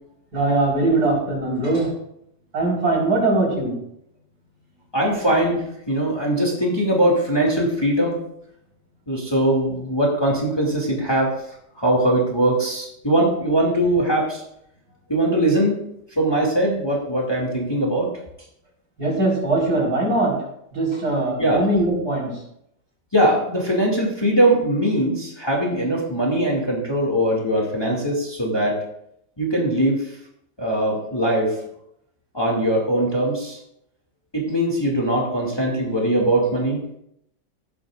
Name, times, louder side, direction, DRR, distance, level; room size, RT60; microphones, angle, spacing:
voice 1, 0.3-1.9 2.5-3.7 19.0-20.3 20.7-22.3, right 2 dB, 60° right, -4 dB, 5.1 m, -21 dB
voice 2, 4.9-8.2 9.1-11.3 11.8-14.4 15.1-15.8 16.2-18.1 21.4-21.6 23.1-28.8 29.4-30.0 30.6-31.5 32.3-33.6 34.3-36.8, right 1 dB, 15° left, -2 dB, 2.5 m, -21 dB
16.0 x 11.5 x 2.6 m, 0.75 s
omnidirectional pair, 1.9 m